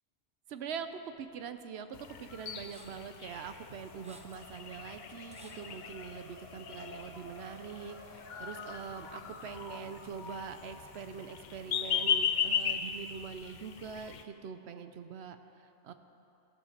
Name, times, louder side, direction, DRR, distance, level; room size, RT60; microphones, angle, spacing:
voice 1, 0.5-15.9, right 6 dB, 70° right, 9 dB, 0.9 m, -43 dB
Race car auto racing, 0.7-13.3, left 1 dB, 20° left, 0.9 m, -55 dB
sound 1, 1.9-14.2, left 7 dB, 55° left, 0.6 m, -37 dB
sound 2, 2.7-3.1 3.7-4.5 4.8-4.9 5.3-6.0, equal, 5° right, 0.6 m, -55 dB
15.0 x 5.5 x 6.6 m, 2.9 s
omnidirectional pair, 1.2 m